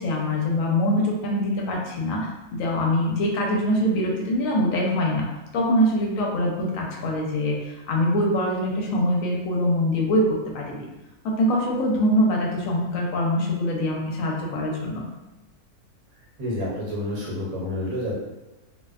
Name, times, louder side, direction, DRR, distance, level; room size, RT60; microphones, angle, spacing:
voice 1, 0.0-5.2 5.5-10.9 11.4-15.0, left 1 dB, 70° left, -1 dB, 0.9 m, -23 dB
voice 2, 16.4-18.2, left 1 dB, 75° right, -4 dB, 1.2 m, -29 dB
2.6 x 2.1 x 2.3 m, 1.1 s
omnidirectional pair, 1.6 m